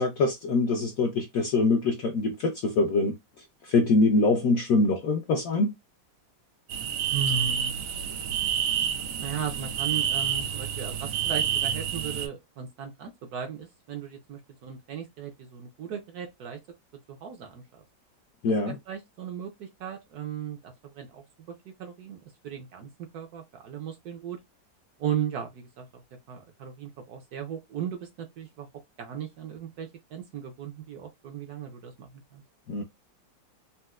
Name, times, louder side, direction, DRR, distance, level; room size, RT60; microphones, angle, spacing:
voice 1, 0.0-3.2 3.6-5.7 18.4-18.8 32.7-32.8, left 3 dB, 75° left, 0.8 m, -24 dB
sound 1, 6.7-12.3, right 9 dB, 85° right, 1.4 m, -28 dB
voice 2, 7.1-7.9 9.2-16.6 17.1-17.8 18.7-22.2 22.4-24.4 25.0-26.0 26.3-28.7 29.0-32.4, right 7 dB, 65° right, 1.0 m, -36 dB
4.2 x 2.1 x 2.3 m
omnidirectional pair, 2.1 m